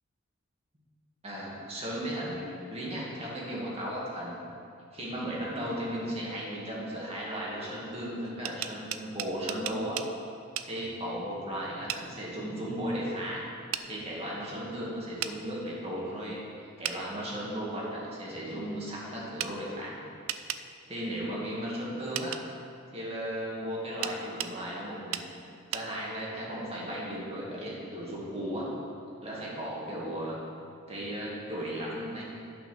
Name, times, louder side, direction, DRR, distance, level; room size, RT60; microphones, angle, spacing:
voice 1, 1.2-4.4 4.9-10.0 10.6-13.4 13.8-20.0 20.9-22.4 22.9-25.2 25.7-28.7 29.2-30.4 30.9-32.4, equal, 30° right, -5 dB, 2.2 m, -35 dB
sound 1, 8.2-10.1 10.6-10.7 11.9-12.0 13.7-13.9 15.2-15.4 16.8-17.0 19.4-19.5 20.3-20.6 22.1-22.4 24.0-24.5 25.1-25.3 25.7-25.9, right 11 dB, 85° right, 0.4 m, -34 dB
10.5 x 5.8 x 5.9 m, 2.6 s
head